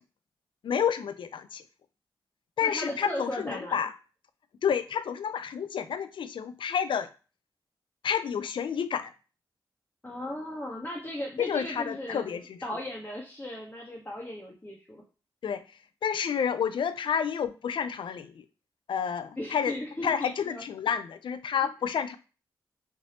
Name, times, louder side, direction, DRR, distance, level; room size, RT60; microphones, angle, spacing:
voice 1, 0.6-1.6 2.6-3.9 4.6-7.1 8.0-9.1 11.4-12.8 15.4-15.6 16.0-18.4 18.9-22.2, left 7 dB, 70° left, 12 dB, 0.4 m, -30 dB
voice 2, 2.6-3.8 10.0-15.0 19.4-20.6 21.6-21.7, left 1 dB, 20° left, -3 dB, 0.9 m, -37 dB
3.2 x 2.7 x 2.8 m, 0.34 s
cardioid pair, 50°, 9 cm